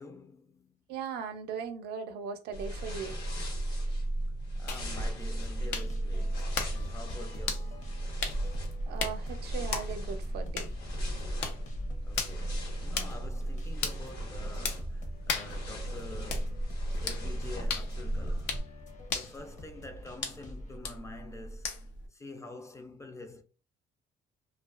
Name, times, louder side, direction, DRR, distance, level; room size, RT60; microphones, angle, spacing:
voice 1, 0.0-0.8 4.6-8.0 12.0-18.6 19.1-23.4, left 2 dB, 15° left, 0.4 m, -47 dB
voice 2, 0.9-3.2 8.9-10.7, right 6 dB, 75° right, 0.5 m, -38 dB
sound 1, 2.5-18.6, right 1 dB, 75° left, 1.1 m, -35 dB
sound 2, 4.7-22.1, left 4 dB, 90° left, 0.5 m, -39 dB
sound 3, 5.4-20.8, left 2 dB, 45° left, 0.7 m, -50 dB
2.3 x 2.3 x 2.3 m
cardioid pair, 110°, 17 cm